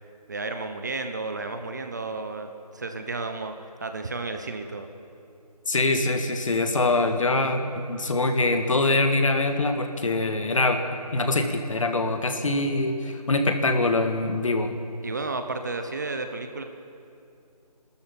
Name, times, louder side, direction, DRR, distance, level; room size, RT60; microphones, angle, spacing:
voice 1, 0.3-3.5 3.8-4.9 15.0-16.6, right 3 dB, 25° right, 7 dB, 0.9 m, -32 dB
voice 2, 5.7-10.8 11.1-14.7, left 2 dB, 50° left, 6 dB, 1.9 m, -24 dB
24.0 x 13.0 x 8.7 m, 2.6 s
figure-of-eight pair, 170°, 20 cm